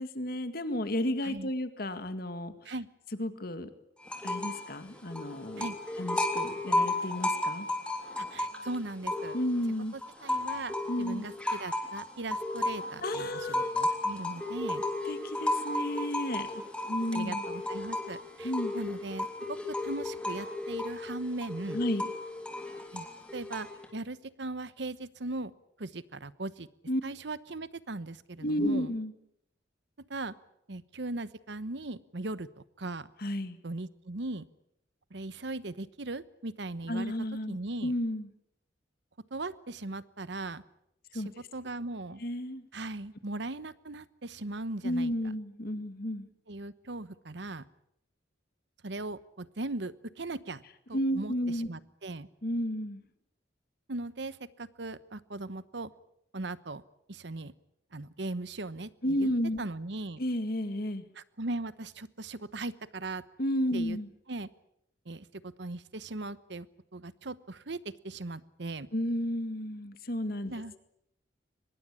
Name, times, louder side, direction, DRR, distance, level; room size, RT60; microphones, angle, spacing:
voice 1, 0.0-2.5 3.2-3.7 4.2-5.7 6.0-7.7 9.3-9.9 10.9-11.3 13.0-13.7 15.1-17.4 18.4-18.7 21.7-22.1 26.9-27.0 28.4-29.1 33.2-33.6 36.9-37.6 37.8-38.3 41.1-41.3 42.2-42.6 44.8-46.3 50.9-51.7 52.4-53.0 59.0-59.6 60.2-61.0 63.4-64.1 68.9-70.5, equal, 50° left, 10 dB, 2.1 m, -32 dB
sound 1, 4.1-4.7 5.0-9.6 10.0-23.8, left 1 dB, 5° left, 3.3 m, -34 dB
voice 2, 8.2-9.4 9.9-14.8 17.1-21.8 22.9-23.1 23.3-25.5 25.8-26.7 27.0-28.9 30.1-30.3 30.7-33.1 33.6-34.5 35.1-37.1 37.5-37.9 39.3-40.6 41.1-41.2 41.5-42.2 42.7-45.1 46.5-47.6 48.8-50.6 50.9-52.3 53.9-55.9 56.3-56.8 57.1-57.5 57.9-59.3 59.6-60.2 61.2-63.2 63.7-64.0 64.3-64.5 65.1-66.7 66.9-68.9 70.5-70.7, right 2 dB, 65° right, 16 dB, 1.0 m, -39 dB
24.0 x 21.0 x 8.5 m, 0.77 s
head